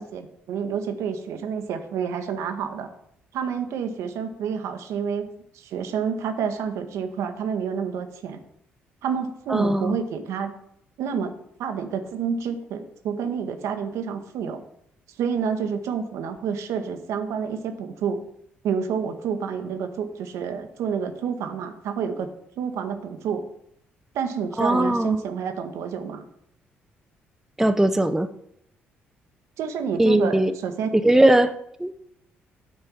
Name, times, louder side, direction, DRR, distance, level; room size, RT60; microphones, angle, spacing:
voice 1, 0.0-2.9 3.3-5.3 5.5-8.4 9.0-10.5 11.0-11.3 11.6-14.6 15.2-18.2 18.6-22.3 22.6-23.4 24.1-26.2 29.6-31.0, right 6 dB, 60° right, 7 dB, 0.9 m, -29 dB
voice 2, 9.5-9.9 24.6-25.2 27.6-28.3 30.0-30.5 30.9-31.5 31.8-31.9, right 1 dB, 5° right, 9 dB, 0.5 m, -19 dB
9.3 x 4.4 x 7.0 m, 0.74 s
figure-of-eight pair, 45°, 6 cm